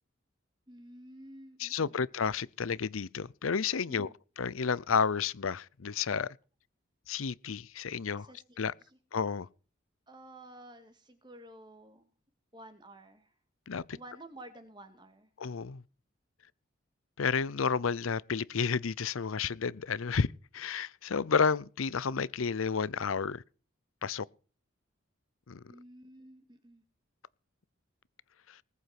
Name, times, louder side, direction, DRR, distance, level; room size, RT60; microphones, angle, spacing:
voice 1, 0.7-2.1 3.9-4.0 8.2-9.0 10.1-12.1 12.5-13.3 13.9-15.3 25.7-26.8, right 1 dB, 20° right, 2.2 m, -52 dB
voice 2, 1.6-4.1 4.4-6.3 7.1-8.3 8.6-8.7 9.1-9.5 13.7-14.0 15.4-15.8 17.2-20.3 20.5-23.4 24.0-24.3 25.5-25.6 28.5-28.6, left 5 dB, 85° left, 0.6 m, -31 dB
19.5 x 8.4 x 6.0 m
head